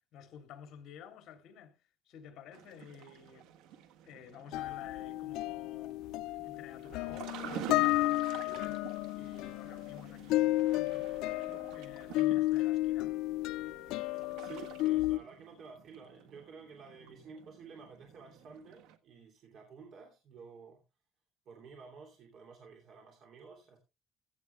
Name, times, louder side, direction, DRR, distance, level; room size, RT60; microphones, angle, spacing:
voice 1, 0.1-1.8 2.0-3.6 4.0-6.1 6.4-8.8 9.1-11.4 11.7-13.2, left 8 dB, 60° left, 3.1 m, -52 dB
sound 1, 2.5-19.0, right 9 dB, 85° right, 1.4 m, -50 dB
sound 2, 4.5-15.2, left 17 dB, 80° left, 0.5 m, -32 dB
voice 2, 14.1-20.8 21.4-23.8, right 5 dB, 50° right, 3.0 m, -52 dB
15.5 x 8.1 x 3.4 m
cardioid pair, 140°, 0 cm